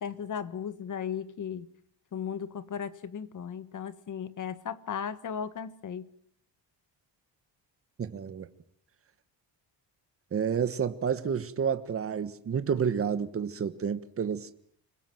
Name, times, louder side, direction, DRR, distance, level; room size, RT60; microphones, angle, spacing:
voice 1, 0.0-1.7 2.1-6.1, left 7 dB, 40° left, 1.4 m, -36 dB
voice 2, 8.0-8.5 10.3-14.5, right 7 dB, 30° right, 1.3 m, -30 dB
27.0 x 20.5 x 7.8 m
cardioid pair, 165°, 45 cm